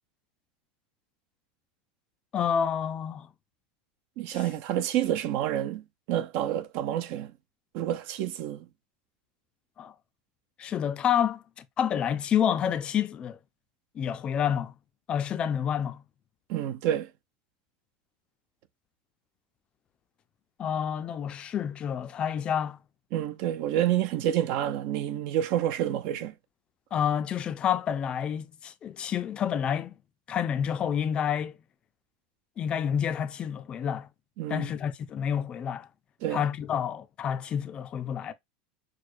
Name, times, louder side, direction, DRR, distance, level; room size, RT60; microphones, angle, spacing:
voice 1, 2.3-3.3 9.8-9.9 10.6-13.4 14.0-14.7 15.1-16.0 20.6-22.8 26.9-29.9 30.3-31.6 32.6-34.1 34.5-35.9 36.3-38.3, left 8 dB, 30° left, 0.4 m, -29 dB
voice 2, 4.2-5.8 6.1-7.3 7.7-8.7 16.5-17.1 23.1-26.3 34.4-34.7 36.2-36.4, right 11 dB, 55° right, 0.6 m, -28 dB
6.3 x 2.2 x 2.5 m
supercardioid pair, 140°, 4 cm